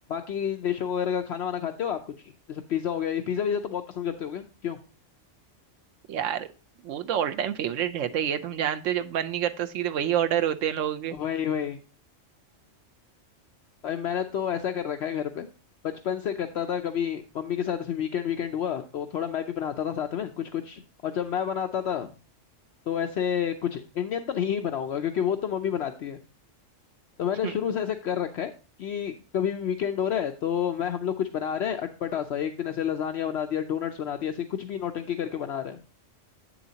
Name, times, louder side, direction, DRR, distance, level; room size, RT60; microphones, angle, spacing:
voice 1, 0.1-2.0 2.2-4.8 11.1-11.8 13.8-15.5 15.8-22.1 22.9-26.2 27.2-28.5 28.8-35.8, left 8 dB, 65° left, 6 dB, 0.8 m, -29 dB
voice 2, 6.1-6.5 6.8-11.2 27.4-27.6, right 10 dB, 80° right, 10 dB, 1.0 m, -27 dB
8.3 x 7.0 x 2.8 m, 0.33 s
omnidirectional pair, 1.3 m